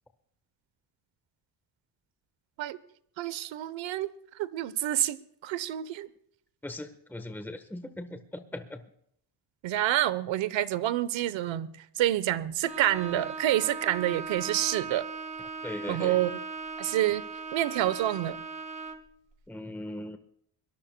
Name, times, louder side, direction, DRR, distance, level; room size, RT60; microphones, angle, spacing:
voice 1, 3.2-4.1 4.4-6.1 9.6-15.1 15.9-16.4 16.8-17.2 17.5-18.4, right 13 dB, 85° right, 1.0 m, -28 dB
voice 2, 6.6-8.8 15.6-16.2 19.5-20.2, left 1 dB, 5° left, 1.2 m, -39 dB
Bowed string instrument, 12.6-19.1, right 5 dB, 15° right, 1.7 m, -39 dB
23.0 x 18.5 x 2.2 m
cardioid pair, 95°, 45 cm